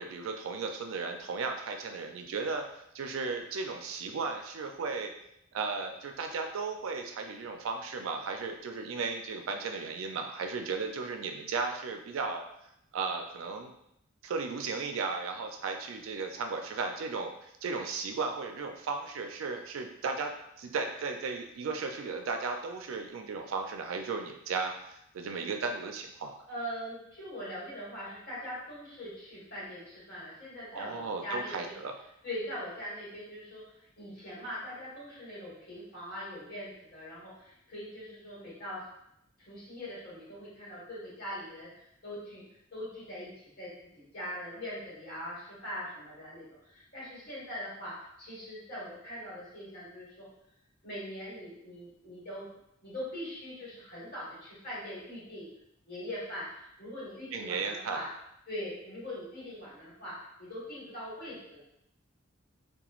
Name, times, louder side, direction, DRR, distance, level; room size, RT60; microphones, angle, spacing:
voice 1, 0.0-2.7 2.9-5.1 5.5-12.4 12.9-13.7 14.2-26.3 30.7-31.9 57.3-58.0, right 4 dB, 80° right, 4 dB, 0.4 m, -35 dB
voice 2, 26.5-31.7 32.2-33.6 34.0-38.8 39.4-42.4 42.7-43.3 43.6-47.9 48.2-50.2 50.8-52.5 52.8-55.5 55.9-58.1 58.5-60.1 60.4-61.6, equal, 50° left, -8 dB, 1.5 m, -41 dB
2.9 x 2.2 x 2.4 m, 0.77 s
head